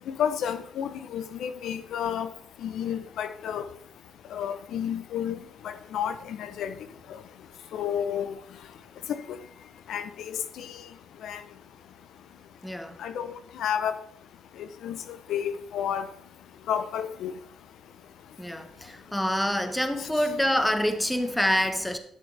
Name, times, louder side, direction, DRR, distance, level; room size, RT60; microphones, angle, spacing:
voice 1, 0.2-2.3 2.6-3.6 4.3-5.4 5.6-6.7 7.7-8.3 9.1-9.2 9.9-10.7 11.2-11.4 13.0-13.9 14.8-15.0 15.3-16.1 16.7-17.3, left 9 dB, 75° left, 0.5 m, -30 dB
voice 2, 12.6-13.0 18.4-22.0, equal, 5° left, 1.0 m, -26 dB
10.5 x 6.5 x 3.3 m
cardioid pair, 90°, 0 cm